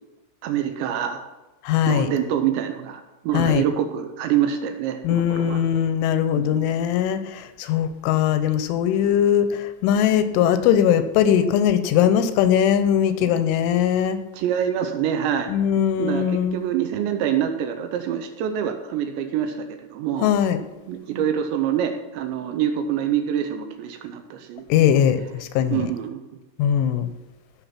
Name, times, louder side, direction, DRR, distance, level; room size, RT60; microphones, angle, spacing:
voice 1, 0.4-1.2 1.8-5.6 6.4-6.6 13.2-13.3 14.3-15.5 16.0-20.3 20.9-24.6 25.7-26.2, right 9 dB, 80° right, 7 dB, 2.8 m, -26 dB
voice 2, 1.6-2.1 3.3-3.6 5.0-14.2 15.5-16.6 20.2-20.6 24.7-25.9 26.6-27.1, left 9 dB, 80° left, 10 dB, 3.1 m, -20 dB
16.0 x 6.6 x 5.9 m, 1.1 s
omnidirectional pair, 5.8 m